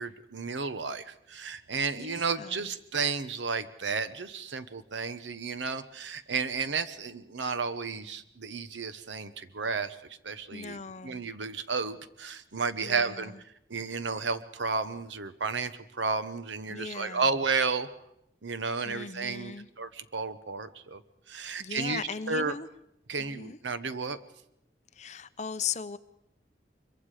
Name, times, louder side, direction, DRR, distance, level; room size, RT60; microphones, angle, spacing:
voice 1, 0.0-10.8 11.0-13.3 13.7-17.9 18.4-21.0 21.3-22.0 22.3-22.5 23.1-24.2, right 4 dB, 85° right, 12 dB, 1.0 m, -32 dB
voice 2, 2.0-2.7 10.5-11.2 12.8-13.4 16.7-17.3 18.8-19.7 21.6-22.7 23.2-23.6 24.9-26.0, left 6 dB, 40° left, 13 dB, 0.7 m, -38 dB
24.0 x 22.5 x 5.0 m, 0.81 s
head